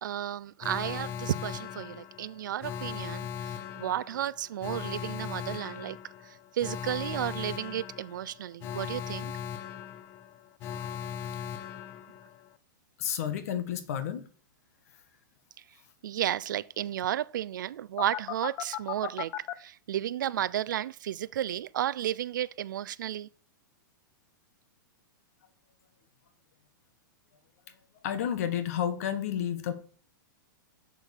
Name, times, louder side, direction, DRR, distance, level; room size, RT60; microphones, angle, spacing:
voice 1, 0.0-6.0 6.2-9.3 16.0-23.3, right 11 dB, 65° right, 0.5 m, -33 dB
Alarm, 0.6-12.5 18.0-19.5, left 9 dB, 20° left, 0.4 m, -38 dB
voice 2, 13.0-14.2 28.0-29.7, left 9 dB, 45° left, 1.6 m, -31 dB
7.5 x 7.0 x 7.2 m
supercardioid pair, 180°, 11 cm